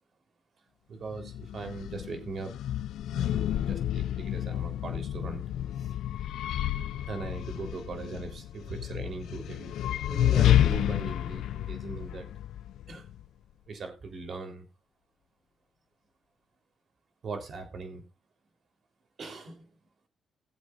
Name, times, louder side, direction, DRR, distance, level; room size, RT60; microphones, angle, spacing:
voice 1, 0.9-2.5 3.1-5.4 5.8-5.9 7.1-9.7 10.1-12.3 12.9-13.1 13.7-14.7 17.2-18.0 19.2-19.7, right 4 dB, 50° right, 5 dB, 3.6 m, -40 dB
sound 1, 1.1-13.3, left 11 dB, 75° left, 0.5 m, -30 dB
19.5 x 7.9 x 2.5 m, 0.24 s
cardioid pair, 90°, 0 cm